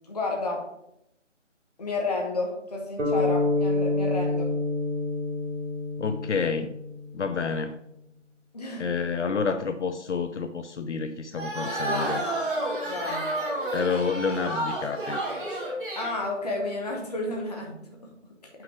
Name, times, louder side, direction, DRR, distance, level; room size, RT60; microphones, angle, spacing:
voice 1, 0.1-0.7 1.8-4.5 8.5-8.9 11.9-12.3 12.8-13.3 16.0-18.0, left 2 dB, 30° left, 1.1 m, -31 dB
sound 1, 3.0-7.3, left 2 dB, 65° right, 2.5 m, -27 dB
voice 2, 6.0-6.8 7.1-7.8 8.8-12.2 13.7-15.2, left 5 dB, 70° left, 0.6 m, -29 dB
sound 2, 11.3-16.2, right 1 dB, 45° right, 1.8 m, -30 dB
5.8 x 5.2 x 4.9 m
figure-of-eight pair, 170°, 37 cm